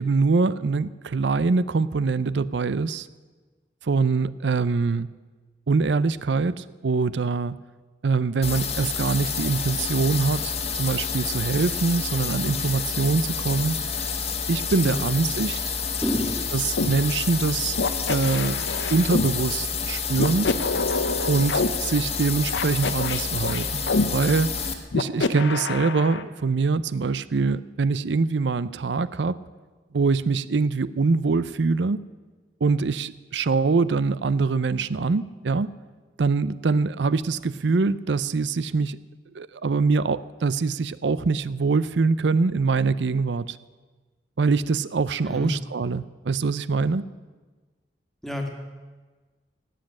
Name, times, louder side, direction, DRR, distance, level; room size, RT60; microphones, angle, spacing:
voice 1, 0.0-3.1 3.8-5.1 5.7-7.6 8.0-14.1 14.5-15.8 16.7-17.8 18.1-20.5 21.3-23.9 24.1-24.6 24.9-29.4 29.9-32.0 32.6-35.7 36.2-39.0 39.3-43.6 44.4-47.1, right 4 dB, 70° right, 17 dB, 0.5 m, -24 dB
sound 1, 8.4-24.7, left 6 dB, 35° left, 1.4 m, -29 dB
voice 2, 14.8-15.1 16.0-16.5 45.2-45.5 48.2-48.5, equal, ahead, 2 dB, 2.0 m, -29 dB
sound 2, 16.8-16.9 17.8-19.3 20.2-21.7 22.5-24.1 24.9-26.2, left 3 dB, 80° left, 0.9 m, -26 dB
18.0 x 7.6 x 8.8 m, 1.3 s
head